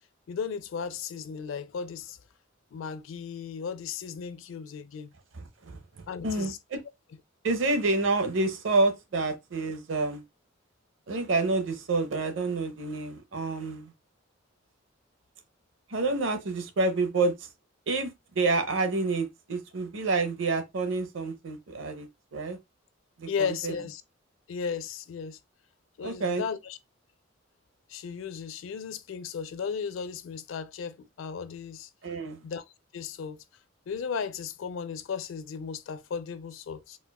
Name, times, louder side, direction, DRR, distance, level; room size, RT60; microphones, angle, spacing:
voice 1, 0.3-2.2 2.7-5.1 6.1-6.6 23.3-24.0 24.5-25.4 26.0-26.8 27.9-31.9 32.4-32.6 32.9-33.4 33.9-37.0, left 6 dB, 75° left, 0.4 m, -35 dB
voice 2, 5.3-6.8 7.4-10.2 11.1-13.9 15.9-17.5 17.9-22.6 23.2-23.7 26.0-26.4 32.0-32.4, right 3 dB, 75° right, 0.6 m, -28 dB
4.2 x 2.3 x 2.2 m
head